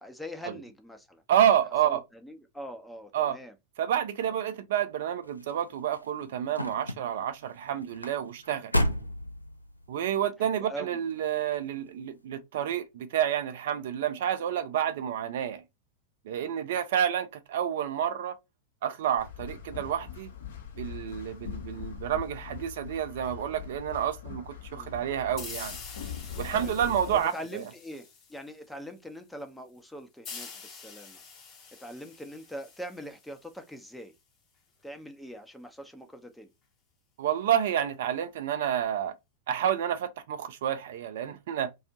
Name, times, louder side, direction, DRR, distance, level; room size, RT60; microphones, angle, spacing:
voice 1, 0.0-1.2 1.8-3.5 4.2-4.3 10.4-11.0 24.7-25.0 26.6-26.7 27.1-31.2 31.8-34.1 34.8-36.5, equal, 5° left, 0.5 m, -43 dB
voice 2, 1.3-2.0 3.1-3.4 3.8-8.7 9.9-15.6 16.3-18.3 18.8-20.3 20.8-25.8 26.4-27.6 37.2-39.1 39.5-41.7, right 10 dB, 55° right, 0.4 m, -29 dB
sound 1, 5.2-10.0 10.7-11.1 11.5-11.6, equal, 85° left, 0.3 m, -32 dB
sound 2, 19.2-27.2, left 8 dB, 60° left, 0.7 m, -42 dB
sound 3, 25.4-28.8 30.2-33.7, left 5 dB, 30° left, 0.8 m, -46 dB
2.4 x 2.3 x 2.7 m
figure-of-eight pair, 90°, 0 cm